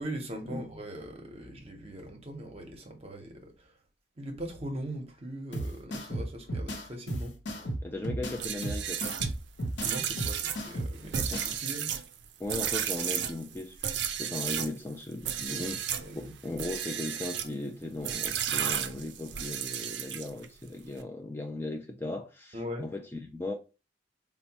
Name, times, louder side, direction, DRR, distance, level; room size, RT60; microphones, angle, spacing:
voice 1, 0.0-3.7 4.2-7.6 9.8-11.9 15.4-16.3 22.5-22.9, right 1 dB, 35° right, 0.8 m, -41 dB
sound 1, 5.5-11.5, right 1 dB, 75° left, 0.8 m, -35 dB
voice 2, 7.6-9.1 11.2-11.6 12.4-13.9 14.2-15.8 16.2-23.5, left 2 dB, 15° left, 0.3 m, -37 dB
sound 2, 8.3-14.8 15.2-16.1 16.5-17.5 18.0-20.5, right 9 dB, 65° right, 0.4 m, -33 dB
4.2 x 2.1 x 2.8 m
head